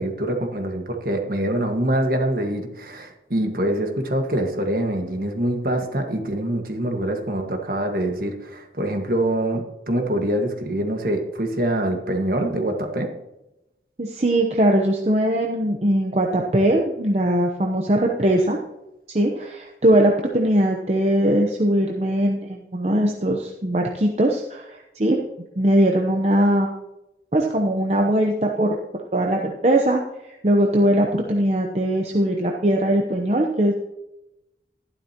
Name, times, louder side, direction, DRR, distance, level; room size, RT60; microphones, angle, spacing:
voice 1, 0.0-13.1, right 1 dB, 55° right, 4 dB, 1.6 m, -24 dB
voice 2, 14.0-18.6 19.1-25.2 25.6-26.7 27.3-28.8 29.1-30.0 30.4-33.8, right 1 dB, 40° right, 1 dB, 0.8 m, -20 dB
12.5 x 11.5 x 2.9 m, 0.92 s
head